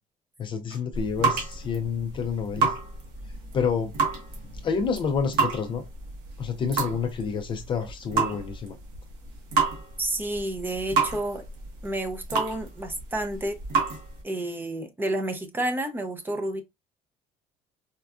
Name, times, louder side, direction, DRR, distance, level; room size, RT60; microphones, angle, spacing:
voice 1, 0.4-2.7 3.5-3.9 4.5-5.8 6.4-8.8, left 6 dB, 35° left, 0.4 m, -28 dB
sound 1, 0.7-14.2, right 4 dB, 85° right, 1.4 m, -30 dB
voice 2, 10.0-11.4 11.8-13.6 14.2-16.6, right 1 dB, 15° right, 0.6 m, -30 dB
4.3 x 2.4 x 2.3 m
cardioid pair, 140°, 15 cm